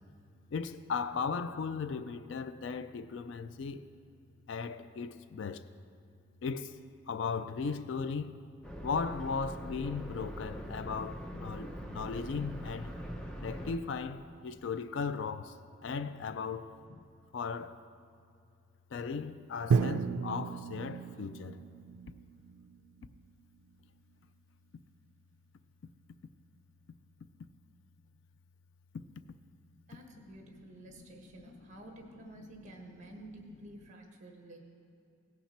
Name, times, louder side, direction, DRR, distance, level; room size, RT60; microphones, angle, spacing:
voice 1, 0.5-3.9 4.5-5.7 6.4-6.8 7.1-8.3 8.8-13.0 13.4-17.0 17.3-17.8 18.9-21.6 31.0-31.1 31.4-31.5, left 5 dB, 65° left, 0.3 m, -37 dB
sound 1, 8.6-13.8, equal, 5° left, 0.5 m, -42 dB
Drum, 19.7-23.7, right 5 dB, 85° right, 0.3 m, -34 dB
voice 2, 29.9-34.6, right 2 dB, 35° right, 1.2 m, -51 dB
16.5 x 5.8 x 4.3 m
head